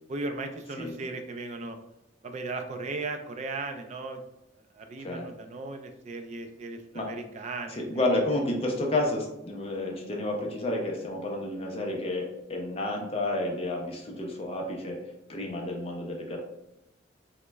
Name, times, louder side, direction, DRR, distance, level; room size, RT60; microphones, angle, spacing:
voice 1, 0.1-1.8 2.2-4.2 4.7-8.0, right 3 dB, 40° right, 6 dB, 0.3 m, -37 dB
voice 2, 0.8-1.1 5.0-5.3 6.9-7.1 7.7-15.0 15.3-16.4, left 1 dB, 35° left, 0 dB, 0.5 m, -30 dB
3.0 x 2.1 x 3.3 m, 0.89 s
head